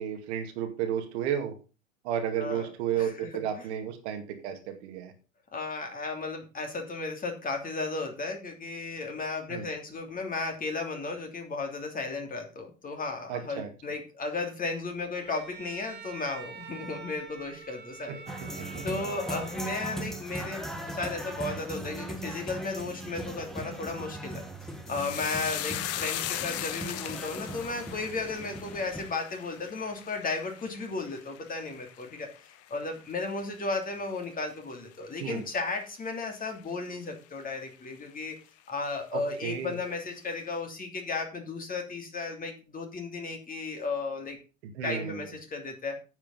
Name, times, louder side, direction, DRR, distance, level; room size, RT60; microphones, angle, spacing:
voice 1, 0.0-1.5 2.0-5.1 9.5-9.7 13.3-13.7 18.7-18.8 35.2-35.4 39.1-39.8 44.7-45.2, right 9 dB, 55° right, 4 dB, 2.4 m, -32 dB
voice 2, 2.9-3.7 5.5-18.1 18.8-24.4 24.9-32.3 32.7-38.3 38.7-44.4 44.8-46.0, left 3 dB, 20° left, 3 dB, 3.0 m, -34 dB
Bowed string instrument, 15.1-20.4, right 6 dB, 25° right, 2.1 m, -46 dB
sound 1, 18.3-29.1, right 1 dB, ahead, 1.8 m, -39 dB
sound 2, 24.9-33.5 33.8-34.4 34.7-35.0, left 12 dB, 40° left, 1.1 m, -39 dB
9.8 x 7.4 x 5.4 m, 0.33 s
figure-of-eight pair, 85°, 39 cm